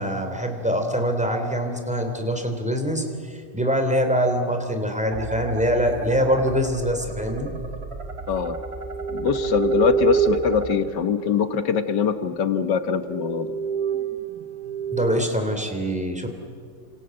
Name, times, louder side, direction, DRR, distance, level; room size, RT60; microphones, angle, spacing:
voice 1, 0.0-7.5 14.9-16.3, equal, 5° right, 4 dB, 3.2 m, -24 dB
sound 1, 5.1-10.7, right 1 dB, 35° right, 2.0 m, -36 dB
sound 2, 8.3-12.0 12.6-12.7 13.0-15.1, right 6 dB, 60° right, 1.7 m, -27 dB
voice 2, 9.1-13.6, left 6 dB, 70° left, 11 dB, 1.8 m, -23 dB
28.5 x 26.5 x 7.9 m, 2.2 s
omnidirectional pair, 2.0 m